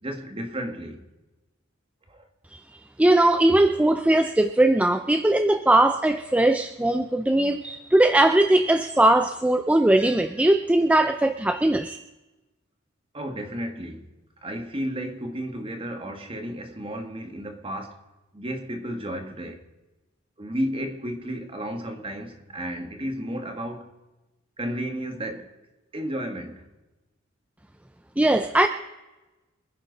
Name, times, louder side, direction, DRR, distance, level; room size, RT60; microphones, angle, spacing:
voice 1, 0.0-1.0 2.1-2.3 3.6-3.7 13.1-14.1 14.4-18.0 18.3-19.6 20.4-23.9 24.6-25.6 25.9-26.7, equal, 25° right, 1.8 m, -33 dB
voice 2, 3.0-12.0 28.2-28.7, right 1 dB, 5° right, 0.4 m, -20 dB
25.5 x 10.5 x 4.1 m
head